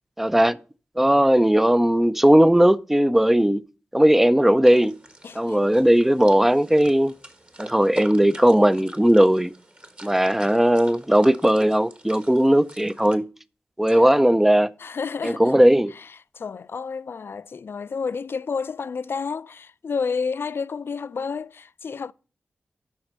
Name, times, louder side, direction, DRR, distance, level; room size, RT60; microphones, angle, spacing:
voice 1, 0.2-0.6 1.0-3.6 3.9-5.0 5.4-7.1 7.6-9.5 10.0-13.3 13.8-14.7 15.2-15.9, right 1 dB, 5° right, 0.4 m, -18 dB
sound 1, 4.6-13.1, right 1 dB, 30° right, 1.4 m, -43 dB
voice 2, 5.2-5.6 13.9-14.2 14.8-15.6 16.0-16.1 16.3-22.1, left 5 dB, 65° left, 0.4 m, -30 dB
12.0 x 4.2 x 6.6 m
wide cardioid pair, 70°, 4 cm